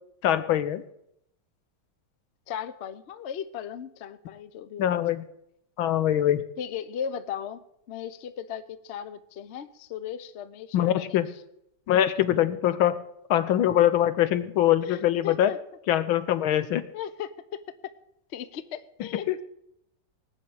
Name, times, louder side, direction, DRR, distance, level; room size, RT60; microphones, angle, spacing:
voice 1, 0.2-0.8 4.8-5.2 5.8-6.4 10.7-11.3 11.9-13.0 13.3-15.5 15.9-16.8, left 11 dB, 90° left, 13 dB, 1.7 m, -23 dB
voice 2, 2.5-5.0 6.6-11.2 14.8-15.6 16.9-17.6 18.3-19.4, left 8 dB, 55° left, 13 dB, 0.7 m, -37 dB
19.0 x 6.5 x 8.6 m, 0.77 s
omnidirectional pair, 2.2 m